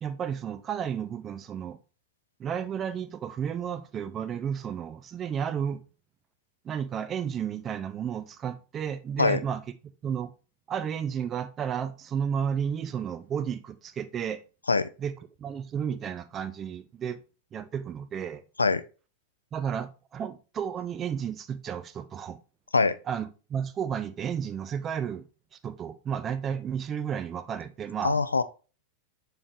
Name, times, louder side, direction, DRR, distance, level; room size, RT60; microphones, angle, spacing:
voice 1, 0.0-1.8 2.4-5.8 6.6-9.6 10.0-10.3 10.7-14.4 15.0-15.1 15.4-17.2 17.5-18.4 19.5-22.4 23.1-25.3 25.6-28.2, right 8 dB, 25° right, 0.5 m, -32 dB
voice 2, 28.0-28.4, left 4 dB, 80° left, 0.3 m, -23 dB
7.0 x 3.2 x 2.4 m
figure-of-eight pair, 90°, 0 cm